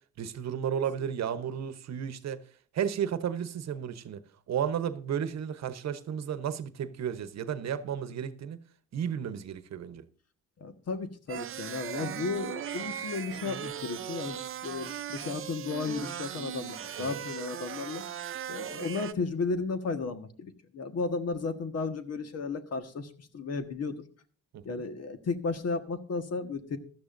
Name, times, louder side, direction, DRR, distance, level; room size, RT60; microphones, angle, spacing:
voice 1, 0.2-2.4 2.7-4.2 4.5-8.6 8.9-10.0 16.9-17.2 24.5-24.8, right 8 dB, 60° right, 1.0 m, -33 dB
voice 2, 10.6-18.0 18.5-24.0 24.6-26.8, left 4 dB, 55° left, 1.5 m, -34 dB
sound 1, 11.3-19.1, right 10 dB, 45° right, 0.6 m, -38 dB
15.5 x 12.0 x 2.6 m
cardioid pair, 90°, 30 cm